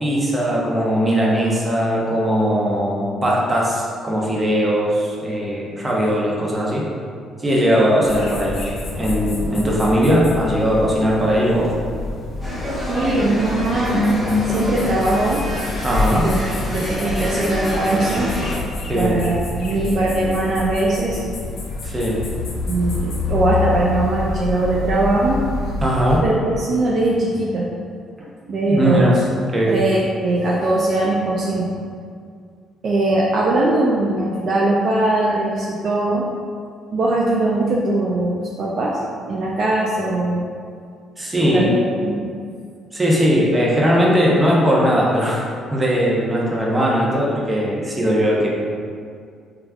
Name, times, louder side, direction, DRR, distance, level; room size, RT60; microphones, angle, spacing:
voice 1, 0.0-6.9 7.4-11.7 15.8-16.3 18.9-19.2 21.8-22.2 25.8-26.2 28.2-28.3 28.7-29.1 29.5-29.8 41.2-41.7 42.9-45.4 45.7-48.5, equal, 25° right, -4 dB, 0.7 m, -19 dB
sound 1, 8.1-26.2, left 3 dB, 65° left, 0.4 m, -28 dB
sound 2, 12.4-18.6, left 1 dB, 5° right, 1.1 m, -26 dB
voice 2, 12.9-14.2 14.5-15.4 16.1-16.5 16.7-18.3 19.0-21.2 22.7-25.4 26.2-27.7 28.5-29.2 29.7-31.7 32.8-36.3 36.9-39.0 39.2-40.4 41.4-42.2, right 2 dB, 55° right, -4 dB, 0.3 m, -20 dB
3.2 x 2.3 x 2.3 m, 2.2 s
supercardioid pair, 65°, 0 cm